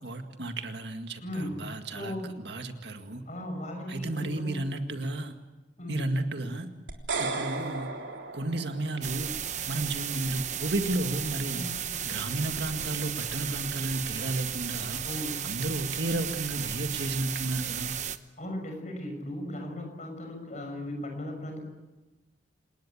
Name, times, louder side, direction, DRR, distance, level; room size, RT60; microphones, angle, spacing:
voice 1, 0.0-3.2 3.9-5.4 5.9-6.7 7.2-7.9 8.3-9.3 9.7-11.6 12.1-15.0 15.4-17.9, right 2 dB, 65° right, 6 dB, 2.0 m, -33 dB
voice 2, 1.2-1.5 1.9-2.3 3.3-4.6 5.8-6.1 11.5-11.7 15.0-15.5 18.4-21.6, left 1 dB, 40° left, 4 dB, 6.3 m, -37 dB
sound 1, 6.9-9.2, right 3 dB, 90° right, 3.5 m, -34 dB
sound 2, 9.0-18.2, right 9 dB, 40° right, 0.9 m, -34 dB
27.5 x 20.0 x 8.6 m, 1.2 s
head